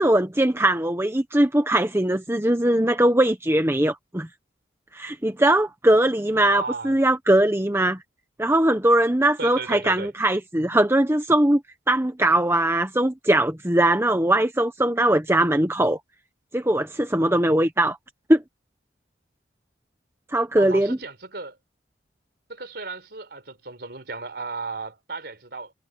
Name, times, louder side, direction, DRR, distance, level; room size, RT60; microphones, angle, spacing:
voice 1, 0.0-4.3 4.9-8.0 8.4-11.6 11.9-16.0 16.5-18.0 18.3-18.4 20.3-21.0, right 1 dB, 15° right, 1.1 m, -20 dB
voice 2, 6.4-7.0 9.4-10.1 20.6-21.6 22.5-25.7, right 3 dB, 60° right, 4.9 m, -34 dB
head